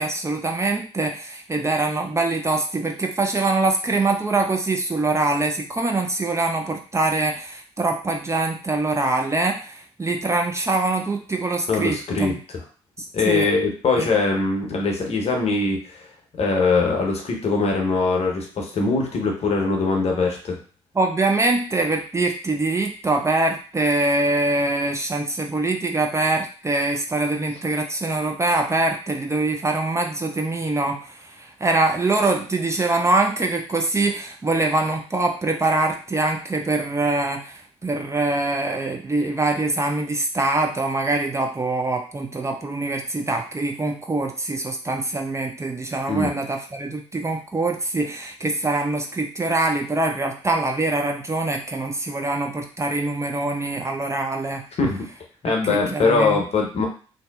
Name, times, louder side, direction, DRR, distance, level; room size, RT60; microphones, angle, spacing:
voice 1, 0.0-12.4 13.0-13.5 14.0-14.1 20.9-54.6 55.7-56.4, right 2 dB, 20° right, 2 dB, 0.5 m, -24 dB
voice 2, 11.7-12.3 13.1-16.0 16.4-20.6 46.1-46.3 54.8-55.0 55.4-56.9, left 3 dB, 50° left, 0 dB, 0.8 m, -22 dB
2.6 x 2.0 x 2.3 m, 0.39 s
hypercardioid pair, 40°, 14 cm